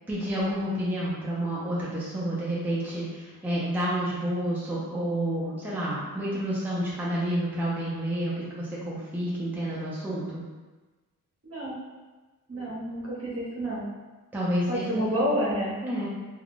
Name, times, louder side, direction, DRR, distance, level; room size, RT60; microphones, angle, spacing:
voice 1, 0.1-10.4 12.5-12.7 14.3-15.4 15.8-16.1, equal, 5° right, -8 dB, 0.5 m, -30 dB
voice 2, 11.4-11.8 12.5-13.8 14.7-15.7, equal, 45° right, -6 dB, 1.0 m, -29 dB
2.4 x 2.2 x 3.5 m, 1.2 s
wide cardioid pair, 110°, 33 cm